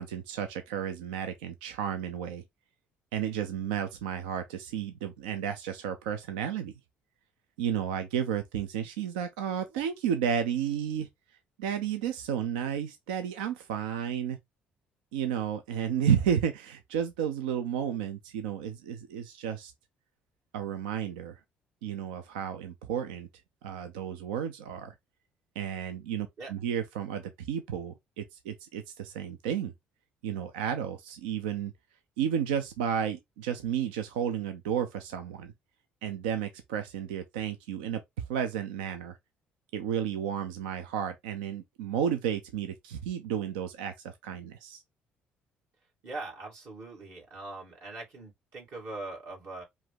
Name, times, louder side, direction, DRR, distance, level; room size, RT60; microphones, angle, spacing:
voice 1, 0.0-2.4 3.1-6.8 7.6-11.1 11.6-14.4 15.1-19.7 20.5-21.4 21.8-23.3 23.6-24.9 25.6-29.7 30.2-31.7 32.2-35.5 36.0-38.0 38.3-39.2 39.7-44.8, right 8 dB, 85° right, 0.5 m, -32 dB
voice 2, 46.0-49.6, right 2 dB, 65° right, 2.4 m, -41 dB
4.8 x 2.6 x 3.6 m
hypercardioid pair, 60°, 5 cm